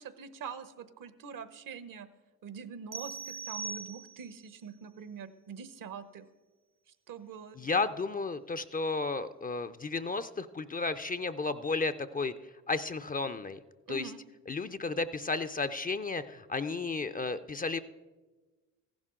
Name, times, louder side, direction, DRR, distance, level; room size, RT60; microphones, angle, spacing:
voice 1, 0.0-2.1 2.4-6.3 7.1-7.6 13.9-14.2, right 6 dB, 60° right, 13 dB, 1.0 m, -44 dB
sound 1, 2.9-4.4, right 5 dB, 35° right, 0.6 m, -40 dB
voice 2, 7.6-12.3 12.7-13.6 13.9-14.1 14.5-17.8, left 3 dB, 25° left, 12 dB, 0.5 m, -33 dB
15.0 x 11.0 x 3.7 m, 1.2 s
supercardioid pair, 60°, 36 cm